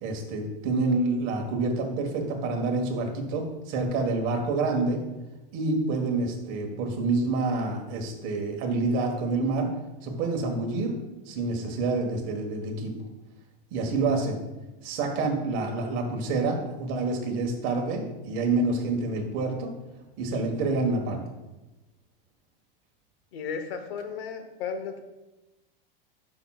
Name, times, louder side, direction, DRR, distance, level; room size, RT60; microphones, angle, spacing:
voice 1, 0.0-5.0 5.5-9.7 10.0-11.0 11.3-12.9 13.7-14.4 14.8-19.7 20.2-21.3, right 3 dB, 40° right, 2 dB, 1.5 m, -27 dB
voice 2, 23.3-25.0, left 6 dB, 80° left, 7 dB, 1.2 m, -34 dB
12.0 x 6.0 x 2.4 m, 1.0 s
supercardioid pair, 155°, 30 cm